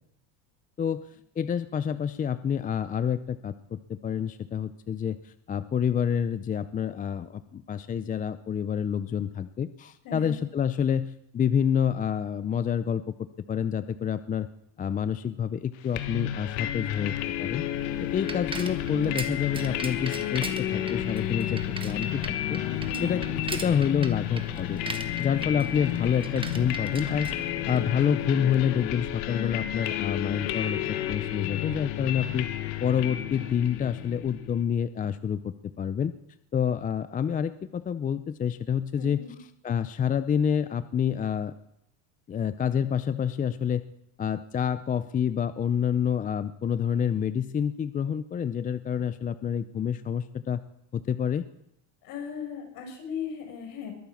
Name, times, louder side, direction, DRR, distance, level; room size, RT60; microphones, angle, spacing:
voice 1, 1.4-13.0 13.5-14.5 14.8-17.1 17.4-17.6 18.0-22.6 23.0-23.2 23.5-24.8 25.2-27.3 27.6-32.5 32.8-36.1 36.5-39.2 39.6-41.5 42.3-43.8 44.2-50.6 50.9-51.5, left 8 dB, 20° left, 13 dB, 0.5 m, -28 dB
voice 2, 10.0-10.4 22.8-23.2 39.0-39.4 52.0-53.9, left 7 dB, 60° left, 3 dB, 6.0 m, -37 dB
sound 1, 15.9-34.6, left 12 dB, 75° left, 1.7 m, -31 dB
Bicycle, 17.3-28.2, right 3 dB, 15° right, 1.5 m, -40 dB
22.0 x 9.1 x 7.2 m, 0.77 s
supercardioid pair, 125°, 38 cm